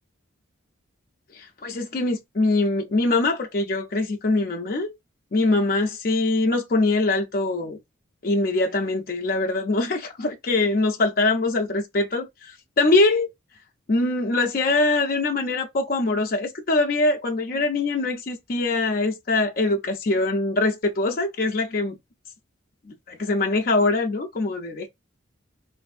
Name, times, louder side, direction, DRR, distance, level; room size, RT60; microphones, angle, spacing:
voice 1, 1.3-4.9 5.3-7.8 8.2-13.3 13.9-22.0 22.9-24.9, left 2 dB, 45° left, 0.5 m, -23 dB
3.4 x 2.5 x 2.3 m
head